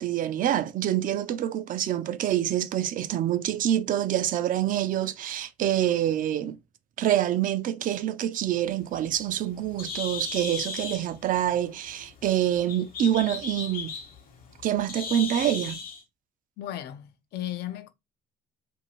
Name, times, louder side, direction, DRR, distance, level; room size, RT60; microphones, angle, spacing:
voice 1, 0.0-6.6 7.0-13.9 14.6-15.8, right 11 dB, 55° right, 0.4 m, -26 dB
Bird, 8.7-16.0, left 5 dB, 55° left, 1.0 m, -37 dB
voice 2, 16.6-17.9, left 13 dB, 70° left, 0.6 m, -35 dB
2.6 x 2.6 x 2.9 m
cardioid pair, 110°, 17 cm